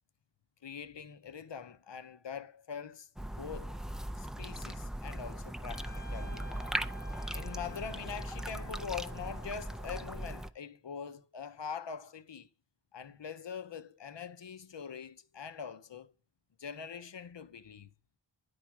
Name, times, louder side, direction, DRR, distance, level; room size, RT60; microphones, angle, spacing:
voice 1, 0.6-3.1 3.4-3.8 4.2-6.5 7.3-12.5 12.9-16.1 16.6-17.9, left 6 dB, 60° left, 0.7 m, -43 dB
sound 1, 3.2-10.5, right 1 dB, ahead, 0.4 m, -39 dB
Trumpet, 5.7-10.4, right 3 dB, 85° left, 1.5 m, -53 dB
9.5 x 4.7 x 6.0 m
wide cardioid pair, 55°, 49 cm